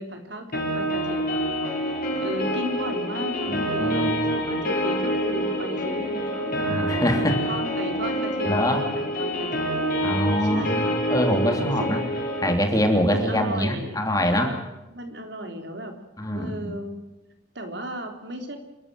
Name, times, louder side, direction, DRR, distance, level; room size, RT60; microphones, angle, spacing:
voice 1, 0.0-1.9 2.2-6.6 7.0-11.0 11.6-11.9 13.1-14.0 14.9-15.9 16.3-17.0 17.6-18.6, equal, 65° right, 5 dB, 3.5 m, -35 dB
sound 1, 0.5-12.5, equal, 50° left, 6.7 m, -27 dB
voice 2, 3.5-4.1 6.6-7.4 8.5-8.8 10.0-12.0 12.4-14.6 16.2-16.8, equal, 20° left, 4 dB, 3.1 m, -24 dB
28.0 x 13.5 x 7.7 m, 1.0 s
head